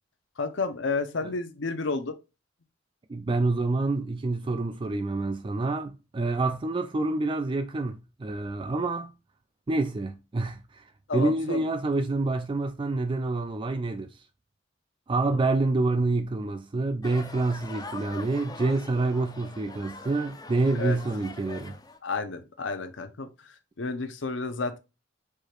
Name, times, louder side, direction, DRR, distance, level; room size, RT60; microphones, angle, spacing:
voice 1, 0.4-2.2 11.1-11.6 15.3-15.4 20.7-21.0 22.0-23.3 23.8-24.8, left 4 dB, 75° left, 0.7 m, -31 dB
voice 2, 3.1-9.1 9.7-10.8 11.1-14.2 15.1-21.8, right 2 dB, 25° right, 0.4 m, -27 dB
sound 1, 17.0-22.0, left 3 dB, 20° left, 0.6 m, -43 dB
4.9 x 4.4 x 2.4 m
head